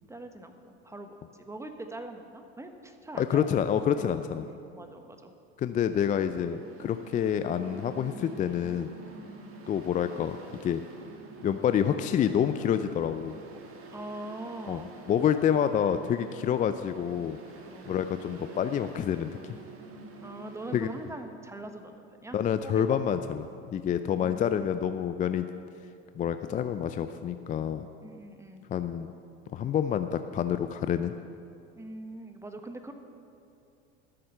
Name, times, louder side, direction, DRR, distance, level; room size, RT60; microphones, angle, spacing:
voice 1, 0.1-3.7 3.9-4.1 4.4-5.3 6.1-6.3 9.3-9.5 13.9-14.9 17.7-17.9 20.2-22.4 22.6-23.0 24.1-24.8 28.0-28.6 31.7-32.9, right 1 dB, 10° right, 6 dB, 1.1 m, -43 dB
voice 2, 3.2-4.4 5.6-8.9 9.7-10.4 10.6-10.8 11.4-13.3 14.7-14.8 15.1-17.4 17.9-19.3 20.7-20.9 22.3-25.5 26.2-27.9 28.7-29.1 29.5-31.1, left 9 dB, 25° left, 10 dB, 0.4 m, -28 dB
Mechanical fan, 6.4-21.2, right 2 dB, 40° right, 1.8 m, -47 dB
12.5 x 7.6 x 6.6 m, 2.6 s
hypercardioid pair, 95°, 34 cm